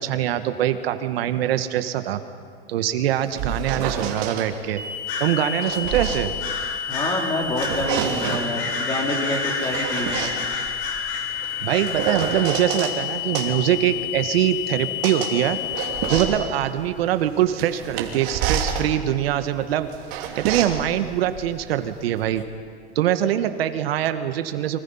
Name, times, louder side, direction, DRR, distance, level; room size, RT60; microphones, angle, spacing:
voice 1, 0.0-2.2 2.7-4.8 5.2-6.3 11.6-19.9 20.3-22.4 22.9-24.8, right 11 dB, 70° right, 9 dB, 1.6 m, -23 dB
sound 1, 3.1-4.5 5.3-7.1 7.4-8.6 9.3-13.0 13.3-22.4, right 7 dB, 45° right, 3.1 m, -30 dB
sound 2, 4.8-16.2, left 9 dB, 5° right, 7.1 m, -31 dB
sound 3, 5.1-5.3 6.4-7.2 7.5-7.8 8.2-12.5, left 3 dB, 45° left, 6.7 m, -31 dB
voice 2, 6.9-10.3, left 1 dB, 15° left, 0 dB, 3.7 m, -27 dB
30.0 x 25.0 x 5.7 m, 2.1 s
supercardioid pair, 160°, 31 cm